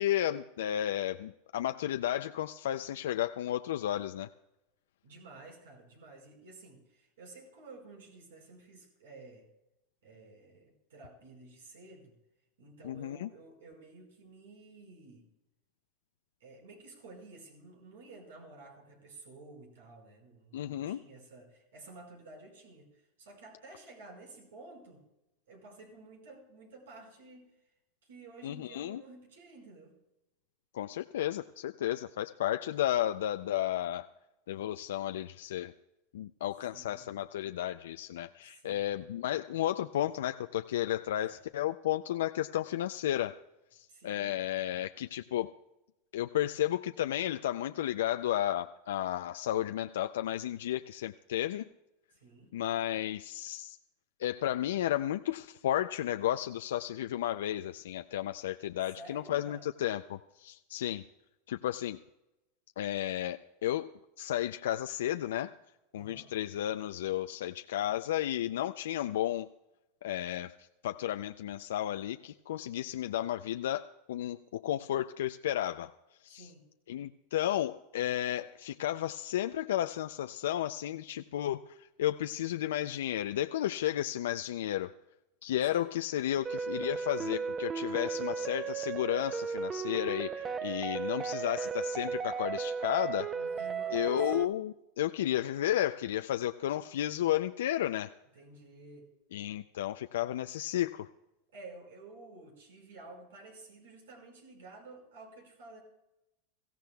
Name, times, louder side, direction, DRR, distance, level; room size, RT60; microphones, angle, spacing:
voice 1, 0.0-4.3 12.8-13.3 20.5-21.0 28.4-29.0 30.7-34.1 34.5-35.7 36.1-43.4 43.7-45.5 46.1-51.7 52.5-53.8 54.2-61.0 61.5-62.0 62.8-63.9 64.2-65.5 65.9-69.5 70.0-70.5 70.8-75.9 76.2-76.4 76.9-81.6 82.0-84.9 85.4-93.3 93.9-98.1 99.3-101.1, left 12 dB, 85° left, 8 dB, 0.4 m, -33 dB
voice 2, 5.0-9.5 10.0-12.1 12.6-15.3 16.4-25.0 25.5-27.5 28.0-29.9 36.7-37.1 38.4-38.8 41.2-41.4 43.9-44.4 52.1-52.5 58.8-59.7 65.9-66.3 76.3-76.7 85.7-85.9 93.3-94.2 98.3-99.1 101.5-105.8, right 3 dB, 90° right, 2 dB, 5.0 m, -52 dB
sound 1, 86.5-94.5, right 6 dB, 20° right, 0.6 m, -35 dB
23.5 x 15.0 x 2.3 m, 0.94 s
supercardioid pair, 130°, 0 cm